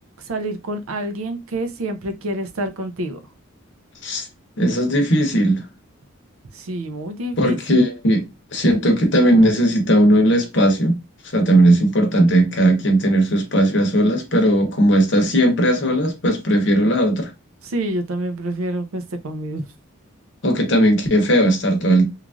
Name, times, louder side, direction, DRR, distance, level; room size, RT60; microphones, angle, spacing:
voice 1, 0.3-3.2 6.5-7.6 17.6-19.6, right 1 dB, 80° right, 0.5 m, -27 dB
voice 2, 4.6-5.6 7.4-10.9 11.3-17.3 20.4-22.1, right 1 dB, 55° left, 0.8 m, -17 dB
3.1 x 2.4 x 2.4 m
head